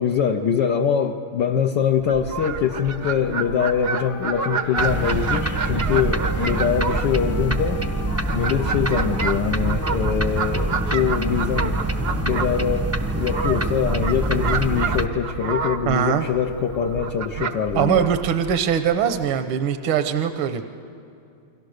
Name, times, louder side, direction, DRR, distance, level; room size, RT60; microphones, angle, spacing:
voice 1, 0.0-7.8 8.3-18.1, left 7 dB, 65° left, 3 dB, 1.3 m, -23 dB
Fowl, 2.0-19.3, right 5 dB, 50° right, 0.7 m, -30 dB
Wind instrument woodwind instrument, 2.3-5.8 6.1-10.3, left 7 dB, 80° left, 1.7 m, -40 dB
sound 1, 4.8-15.1, right 2 dB, 10° right, 0.7 m, -25 dB
voice 2, 15.9-16.2 17.8-20.6, right 8 dB, 75° right, 8 dB, 1.7 m, -21 dB
29.0 x 23.5 x 6.5 m, 2.6 s
omnidirectional pair, 2.3 m